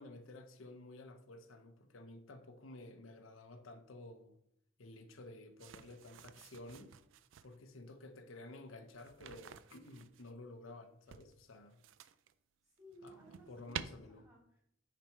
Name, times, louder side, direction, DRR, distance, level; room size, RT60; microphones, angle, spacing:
voice 1, 0.0-4.4 4.8-6.9 7.4-11.8 13.0-13.2 13.5-14.2, left 2 dB, 80° left, 0.7 m, -53 dB
sound 1, 5.6-7.6 8.9-10.3 11.1-12.3 12.8-13.8, right 9 dB, 65° right, 0.4 m, -50 dB
voice 2, 12.6-14.6, equal, 15° right, 2.6 m, -59 dB
5.9 x 5.1 x 4.6 m
head